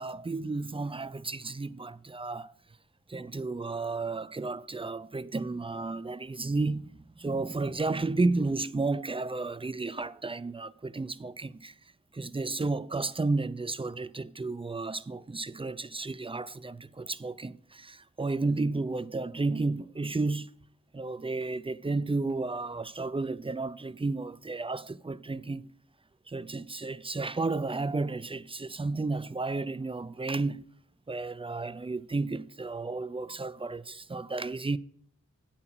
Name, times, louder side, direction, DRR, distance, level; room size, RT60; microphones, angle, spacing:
voice 1, 0.0-2.5 3.1-11.7 12.1-20.5 20.9-25.7 26.3-30.7 31.1-34.8, right 3 dB, 15° right, 0.4 m, -32 dB
8.9 x 5.8 x 6.1 m
wide cardioid pair, 45°, 33 cm